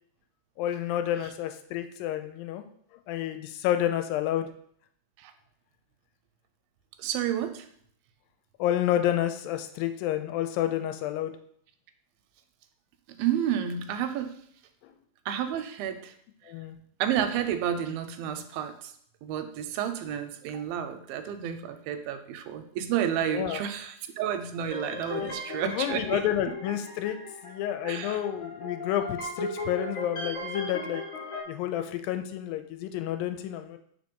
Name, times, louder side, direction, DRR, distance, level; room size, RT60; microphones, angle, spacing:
voice 1, 0.6-2.6 3.1-4.5 8.6-11.3 16.5-16.8 23.2-23.6 25.2-25.4 25.6-27.2 27.4-31.0 31.5-33.8, left 11 dB, 85° left, 8 dB, 2.2 m, -30 dB
voice 2, 7.0-7.7 13.2-14.4 15.3-16.1 17.0-18.9 19.2-26.2 27.9-28.2, right 9 dB, 85° right, 8 dB, 2.4 m, -31 dB
sound 1, 24.7-31.4, left 2 dB, 55° left, 0.9 m, -37 dB
4.8 x 3.9 x 5.2 m, 0.65 s
omnidirectional pair, 4.2 m